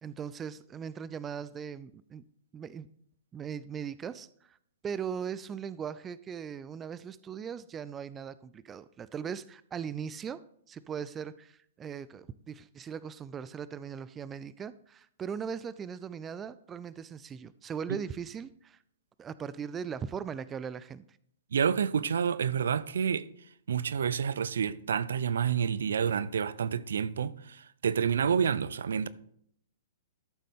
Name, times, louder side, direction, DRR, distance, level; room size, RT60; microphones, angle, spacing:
voice 1, 0.0-2.2 2.5-2.9 3.3-4.6 4.8-18.8 19.2-21.0, right 7 dB, 20° right, 0.4 m, -39 dB
voice 2, 21.5-23.3 23.7-29.1, right 7 dB, 70° right, 0.5 m, -29 dB
13.5 x 7.5 x 3.6 m
hypercardioid pair, 120°, 0 cm